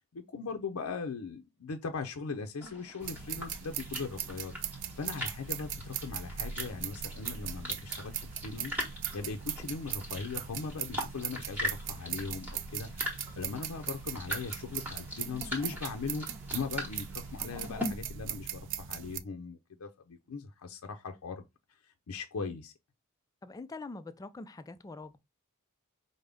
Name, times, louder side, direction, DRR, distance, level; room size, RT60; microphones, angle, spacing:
voice 1, 0.1-8.1 8.4-8.7 9.1-16.3 16.5-21.5 22.1-22.7, left 4 dB, 85° left, 0.5 m, -39 dB
sound 1, 2.6-17.9, left 1 dB, 10° right, 1.2 m, -42 dB
sound 2, 3.0-19.2, right 9 dB, 60° right, 0.4 m, -39 dB
voice 2, 23.4-25.2, left 3 dB, 15° left, 0.3 m, -44 dB
5.1 x 2.1 x 3.3 m
head